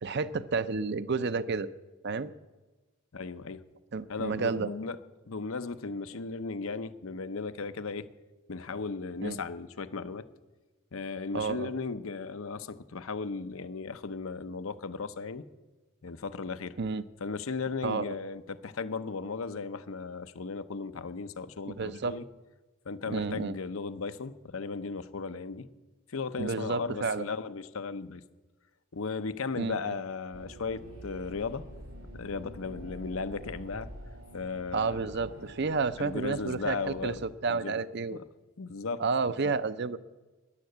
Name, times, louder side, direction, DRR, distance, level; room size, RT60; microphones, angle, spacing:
voice 1, 0.0-1.7 2.0-2.3 3.9-4.7 9.2-9.4 11.3-11.7 16.8-17.0 17.8-18.1 21.7-22.2 23.1-23.6 26.4-27.3 29.6-29.8 34.7-38.2 39.0-40.0, right 4 dB, 50° right, 15 dB, 0.6 m, -31 dB
voice 2, 3.1-3.6 4.1-5.0 5.3-8.1 8.5-10.3 10.9-15.4 16.0-16.8 17.2-22.2 22.9-25.7 26.1-28.2 28.9-31.6 32.1-33.9 34.3-35.0 35.3-35.5 36.0-37.2 37.5-37.8 38.1-38.2 38.6-39.0 39.4-39.5, left 4 dB, 75° left, 12 dB, 0.7 m, -36 dB
sound 1, 30.3-37.3, right 1 dB, 90° right, 5.7 m, -47 dB
13.0 x 10.5 x 7.9 m, 1.2 s
head